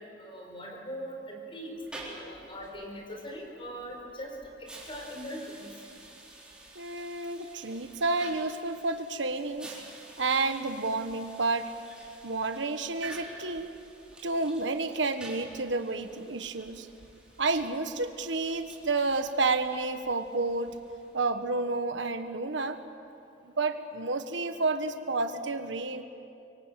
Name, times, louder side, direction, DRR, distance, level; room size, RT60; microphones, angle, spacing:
voice 1, 0.0-1.8 2.1-5.7, equal, 30° left, 1 dB, 4.9 m, -41 dB
sound 1, 1.7-21.4, right 2 dB, 5° right, 4.1 m, -50 dB
voice 2, 6.7-9.8 10.2-11.7 12.2-13.7 14.2-16.9 17.4-20.8 21.1-22.8 23.4-26.0, right 3 dB, 90° right, 8 dB, 1.4 m, -30 dB
25.0 x 23.5 x 7.6 m, 2.6 s
head